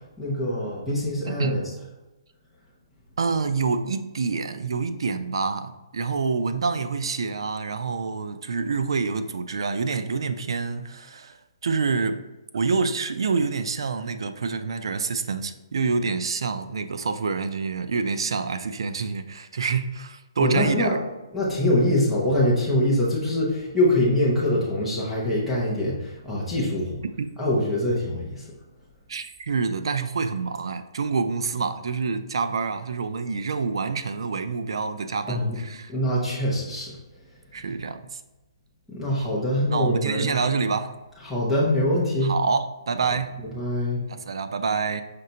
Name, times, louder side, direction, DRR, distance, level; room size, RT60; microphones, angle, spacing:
voice 1, 0.2-1.6 20.4-20.9 21.3-27.0 27.4-28.5 35.3-35.6 35.9-36.9 38.9-40.4 41.2-42.3 43.4-44.0, left 1 dB, ahead, -9 dB, 0.6 m, -24 dB
voice 2, 1.3-1.6 3.2-11.4 11.6-12.2 12.5-20.9 27.2-27.3 29.1-35.9 37.5-38.2 39.2-39.3 39.7-40.9 42.2-43.3 44.1-45.0, right 4 dB, 65° right, 10 dB, 0.4 m, -27 dB
5.2 x 3.2 x 2.8 m, 1.0 s
hypercardioid pair, 180°, 3 cm